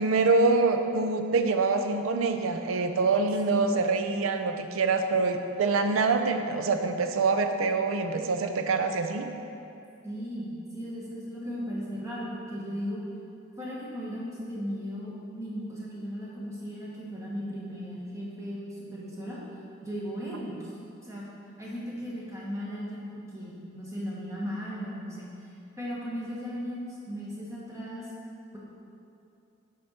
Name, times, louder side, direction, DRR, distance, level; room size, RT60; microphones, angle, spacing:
voice 1, 0.0-9.2, right 3 dB, 75° right, 7 dB, 0.5 m, -25 dB
voice 2, 10.0-13.0 13.6-19.4 19.8-20.7 21.0-21.2 21.6-25.3 25.8-28.1, equal, 15° right, -6 dB, 1.4 m, -36 dB
7.7 x 5.2 x 4.2 m, 2.7 s
head